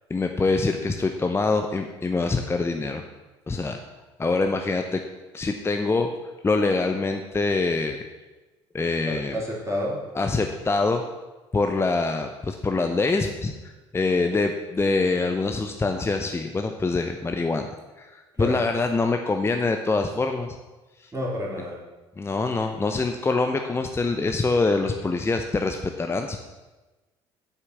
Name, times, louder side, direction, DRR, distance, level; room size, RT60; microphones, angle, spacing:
voice 1, 0.1-3.0 3.5-3.8 4.2-5.0 5.3-6.1 6.4-8.1 8.7-9.4 10.2-11.0 11.5-13.5 13.9-20.6 21.0-21.1 22.2-26.4, left 3 dB, 20° left, 5 dB, 0.7 m, -24 dB
voice 2, 9.1-10.0 18.4-18.6 21.1-21.8, equal, 20° right, -3 dB, 3.6 m, -29 dB
8.0 x 5.8 x 7.0 m, 1.2 s
figure-of-eight pair, 55°, 14 cm